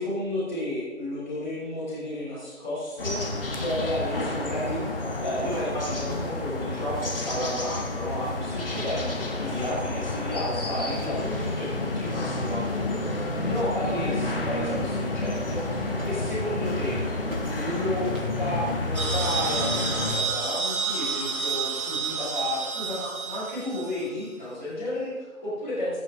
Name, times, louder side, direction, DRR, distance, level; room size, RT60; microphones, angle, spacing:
voice 1, 0.0-17.0 17.5-26.0, left 1 dB, 10° left, -18 dB, 2.6 m, -32 dB
sound 1, 3.0-20.2, left 2 dB, 40° left, 1.5 m, -30 dB
sound 2, 5.1-19.3, right 1 dB, 70° right, 3.6 m, -47 dB
sound 3, 18.9-24.2, right 5 dB, 85° right, 1.6 m, -30 dB
15.0 x 8.7 x 3.8 m, 1.3 s
figure-of-eight pair, 165°, 42 cm